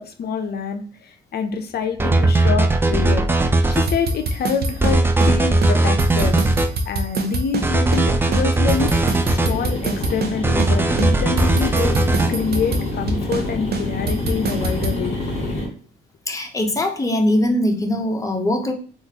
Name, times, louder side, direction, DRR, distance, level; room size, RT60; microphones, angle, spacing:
voice 1, 0.0-3.3 3.7-6.4 6.9-8.9 9.3-12.0 12.3-15.5, left 5 dB, 55° left, 6 dB, 0.5 m, -26 dB
sound 1, 2.0-3.9 4.8-6.7 7.6-9.5 10.4-12.3, right 2 dB, 10° right, 0.4 m, -18 dB
sound 2, 3.7-5.3 5.6-5.7 6.0-8.1 8.3-10.3 10.6-10.7 11.0-13.5 13.7-15.0, right 3 dB, 55° right, 0.6 m, -25 dB
sound 3, 8.2-15.7, left 2 dB, 35° left, 1.7 m, -28 dB
voice 2, 16.3-18.7, left 1 dB, 15° left, 3 dB, 0.8 m, -21 dB
3.7 x 2.5 x 2.8 m, 0.43 s
cardioid pair, 90°, 20 cm